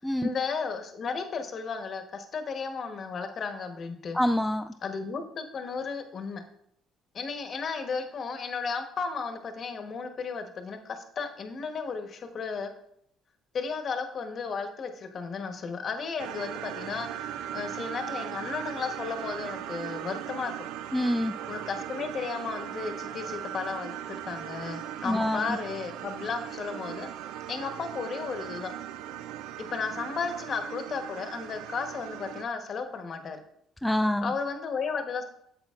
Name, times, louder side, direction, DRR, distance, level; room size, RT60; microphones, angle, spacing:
voice 1, 0.2-4.2 4.8-6.4 7.1-12.7 13.5-20.5 21.5-27.1 27.5-28.7 29.6-33.4 34.2-35.2, left 5 dB, 45° left, 7 dB, 1.0 m, -34 dB
voice 2, 4.1-4.7 20.9-21.3 25.0-25.4 33.8-34.3, left 1 dB, 5° left, 7 dB, 0.3 m, -26 dB
sound 1, 16.2-32.4, right 11 dB, 80° right, 0.3 m, -38 dB
8.3 x 7.6 x 2.4 m, 0.72 s
supercardioid pair, 85°, 0 cm